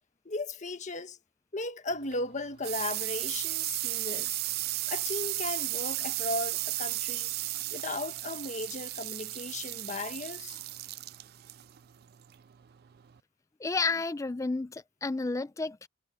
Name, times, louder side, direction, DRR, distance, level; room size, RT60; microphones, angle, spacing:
voice 1, 0.2-1.2 1.5-4.4 4.9-7.3 7.7-10.6, left 2 dB, 40° left, 1.4 m, -36 dB
sound 1, 1.9-13.2, right 17 dB, 60° right, 0.4 m, -35 dB
voice 2, 13.6-15.9, left 3 dB, 20° left, 0.4 m, -31 dB
head